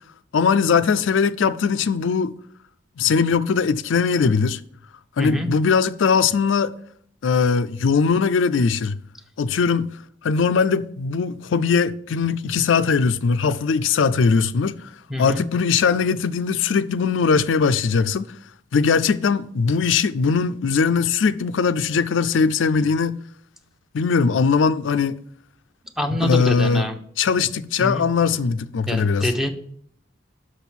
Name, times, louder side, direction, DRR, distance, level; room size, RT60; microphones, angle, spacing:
voice 1, 0.3-2.3 3.0-4.6 5.2-6.7 7.2-9.0 9.4-10.0 10.2-14.9 15.2-18.3 18.7-23.2 23.9-25.2 26.2-26.8 27.2-29.3, left 5 dB, 80° left, 0.4 m, -20 dB
voice 2, 5.2-5.5 15.1-15.4 26.0-27.0 27.8-28.1 28.9-29.5, left 1 dB, ahead, 0.8 m, -25 dB
6.3 x 6.0 x 7.2 m
head